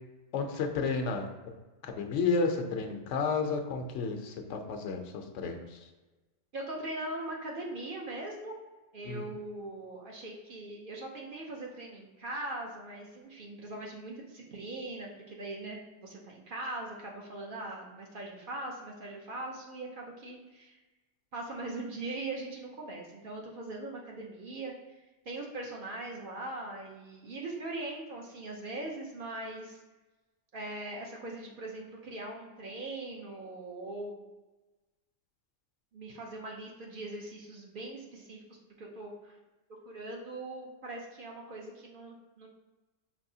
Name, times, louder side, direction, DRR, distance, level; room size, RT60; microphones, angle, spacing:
voice 1, 0.3-1.3 1.8-5.8 9.0-9.2, left 4 dB, 75° left, 4 dB, 0.9 m, -32 dB
voice 2, 6.5-8.5 8.9-20.8 21.3-25.0 25.3-29.8 30.5-34.2 35.9-39.4 39.9-42.5, right 2 dB, 55° right, -1 dB, 0.7 m, -41 dB
5.3 x 2.8 x 2.7 m, 1.2 s
omnidirectional pair, 1.3 m